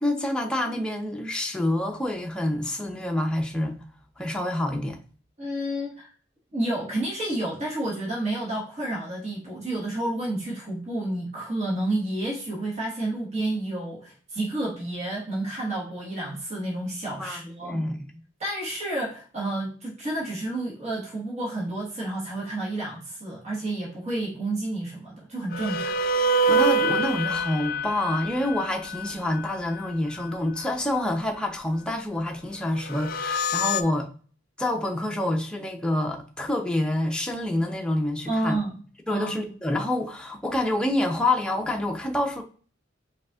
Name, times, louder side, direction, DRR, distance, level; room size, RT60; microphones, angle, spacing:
voice 1, 0.0-3.8 4.2-5.0 17.2-18.1 26.5-34.1 34.6-38.6 39.1-42.4, left 1 dB, 5° left, 0.6 m, -27 dB
voice 2, 5.4-6.1 6.5-17.9 18.4-26.0 38.3-38.8 39.1-39.3, right 1 dB, 35° right, 1.4 m, -30 dB
sound 1, 25.5-29.9 32.8-33.8, right 1 dB, 50° left, 0.4 m, -25 dB
5.2 x 4.1 x 2.4 m
head